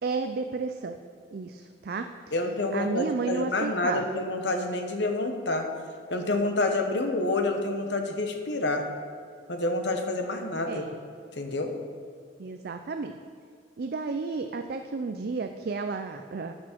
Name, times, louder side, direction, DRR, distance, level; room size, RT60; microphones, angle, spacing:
voice 1, 0.0-1.0 1.3-2.1 2.7-4.1 10.7-10.9 12.4-13.2 13.8-16.5, right 4 dB, 55° right, 7 dB, 0.4 m, -32 dB
voice 2, 2.3-5.6 6.1-8.9 9.5-10.9 11.3-11.7, left 2 dB, 70° left, 4 dB, 1.1 m, -28 dB
12.0 x 6.2 x 4.5 m, 2.3 s
head